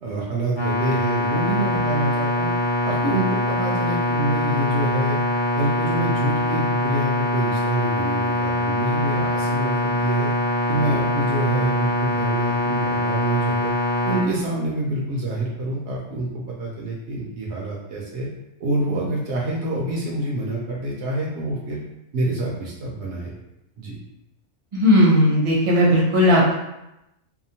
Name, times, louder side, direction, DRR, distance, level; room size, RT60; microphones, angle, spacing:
voice 1, 0.0-2.5 2.8-5.2 5.5-10.3 10.7-13.7 14.0-18.3 18.6-21.8 22.1-23.3 23.8-24.0, right 2 dB, 70° right, -3 dB, 0.8 m, -26 dB
sound 1, 0.6-14.2, left 1 dB, 40° left, 0.4 m, -23 dB
voice 2, 24.7-26.6, left 1 dB, 30° right, -5 dB, 0.6 m, -16 dB
2.7 x 2.0 x 2.7 m, 0.89 s
omnidirectional pair, 1.3 m